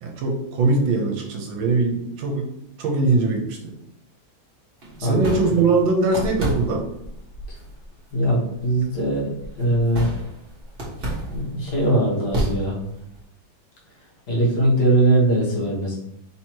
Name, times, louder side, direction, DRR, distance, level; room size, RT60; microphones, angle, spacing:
voice 1, 0.0-2.5 2.8-3.7 5.0-6.8, right 3 dB, 75° right, 2 dB, 1.5 m, -21 dB
sound 1, 4.8-13.2, right 1 dB, 30° right, 1.2 m, -32 dB
voice 2, 8.1-9.3 9.6-10.1 11.3-12.8 14.3-16.0, right 1 dB, 60° left, -4 dB, 1.7 m, -20 dB
3.9 x 2.9 x 4.4 m, 0.79 s
omnidirectional pair, 2.2 m